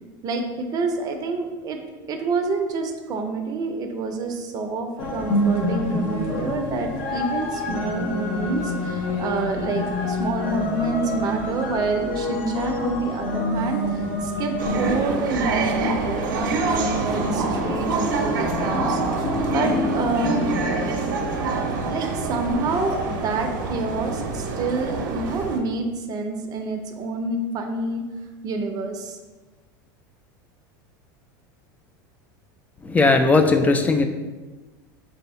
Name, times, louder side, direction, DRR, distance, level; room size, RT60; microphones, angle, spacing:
voice 1, 0.2-1.8 2.1-20.4 21.9-28.0 28.4-29.2, right 3 dB, 40° right, 4 dB, 0.6 m, -27 dB
sound 1, 5.0-24.5, left 1 dB, 55° left, 0.9 m, -29 dB
sound 2, 14.6-25.6, right 4 dB, 85° right, 0.6 m, -26 dB
voice 2, 32.8-34.0, left 3 dB, 15° left, 6 dB, 0.3 m, -18 dB
3.4 x 2.7 x 4.3 m, 1.2 s
supercardioid pair, 120°, 10 cm